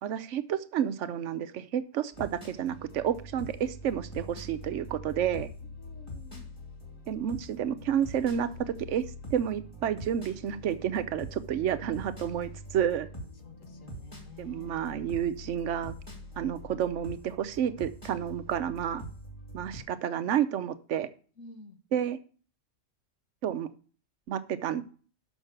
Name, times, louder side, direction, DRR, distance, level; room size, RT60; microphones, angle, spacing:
voice 1, 0.0-5.5 7.1-9.0 9.3-13.1 14.4-16.0 16.4-19.0 19.5-21.1 21.9-22.2 23.4-23.7 24.3-24.8, right 9 dB, 70° right, 13 dB, 1.0 m, -30 dB
sound 1, 2.1-19.8, equal, 25° left, 2.5 m, -44 dB
voice 2, 5.8-6.5 13.4-14.7 21.4-21.8, left 2 dB, 80° left, 6 dB, 1.7 m, -50 dB
6.3 x 6.2 x 6.6 m, 0.40 s
omnidirectional pair, 1.3 m